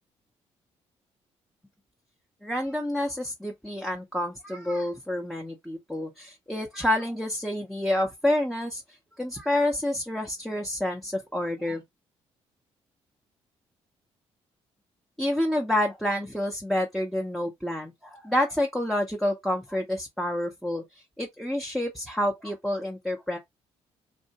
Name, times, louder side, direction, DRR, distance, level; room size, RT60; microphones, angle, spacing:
voice 1, 2.4-8.8 9.2-11.8 15.2-23.4, left 1 dB, ahead, 0.7 m, -28 dB
2.5 x 2.2 x 2.8 m
hypercardioid pair, 50°, 14 cm